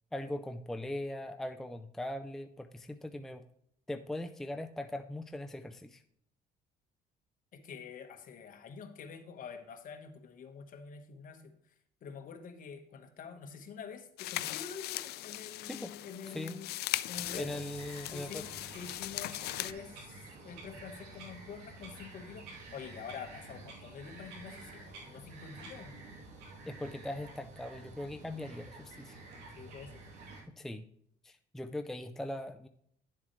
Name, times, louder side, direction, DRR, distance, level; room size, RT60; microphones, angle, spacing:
voice 1, 0.1-3.4 3.9-6.0 15.7-15.9 16.3-16.6 17.3-18.4 26.6-29.2 30.6-30.8 31.2-32.7, left 1 dB, ahead, 7 dB, 0.5 m, -40 dB
voice 2, 7.5-11.5 12.0-16.7 17.1-17.6 18.1-18.5 18.7-26.0 29.5-30.0, left 6 dB, 55° left, 6 dB, 1.3 m, -47 dB
sound 1, 14.2-19.7, left 16 dB, 75° left, 0.4 m, -39 dB
Bird vocalization bird call bird song, 17.1-30.4, right 3 dB, 85° right, 2.9 m, -50 dB
10.5 x 7.3 x 3.1 m, 0.69 s
cardioid pair, 110°, 17 cm